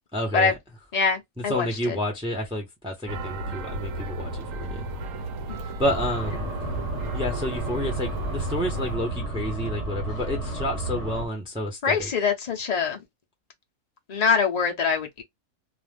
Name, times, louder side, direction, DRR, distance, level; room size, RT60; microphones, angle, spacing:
voice 1, 0.1-0.5 1.5-4.8 5.8-6.5 7.1-12.1, left 1 dB, 5° right, 0.7 m, -30 dB
voice 2, 0.9-2.0 11.8-13.0 14.1-15.2, left 5 dB, 65° left, 0.4 m, -24 dB
sound 1, 3.1-9.0, right 1 dB, 70° right, 1.0 m, -34 dB
sound 2, 5.8-11.3, right 2 dB, 25° left, 1.2 m, -32 dB
2.4 x 2.4 x 3.4 m
omnidirectional pair, 1.5 m